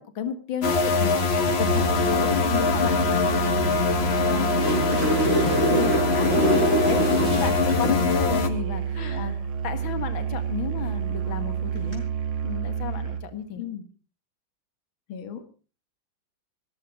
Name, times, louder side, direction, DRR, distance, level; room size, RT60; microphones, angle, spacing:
voice 1, 0.0-9.3 9.6-12.0 12.4-13.7, left 7 dB, 75° left, 9 dB, 2.4 m, -33 dB
sound 1, 0.6-8.5, left 4 dB, 35° left, 1.2 m, -23 dB
Musical instrument, 1.5-13.3, right 8 dB, 90° right, 2.1 m, -29 dB
sound 2, 4.5-7.9 11.8-11.9, right 1 dB, 30° right, 5.5 m, -25 dB
voice 2, 9.0-9.4 13.6-13.9 15.1-15.5, left 8 dB, 90° left, 8 dB, 2.3 m, -37 dB
16.5 x 14.5 x 4.9 m, 0.37 s
omnidirectional pair, 2.2 m